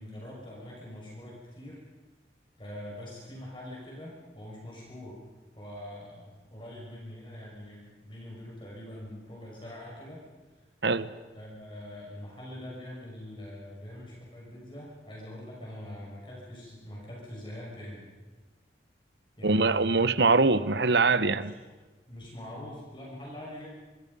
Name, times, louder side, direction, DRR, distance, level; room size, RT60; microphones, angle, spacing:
voice 1, 0.0-1.8 2.6-5.2 5.6-10.2 11.3-18.1 19.4-20.0 21.4-21.5 22.1-23.7, left 1 dB, 30° left, 6.0 m, -43 dB
voice 2, 19.4-21.5, right 3 dB, 80° right, 1.0 m, -23 dB
26.0 x 25.5 x 5.5 m
head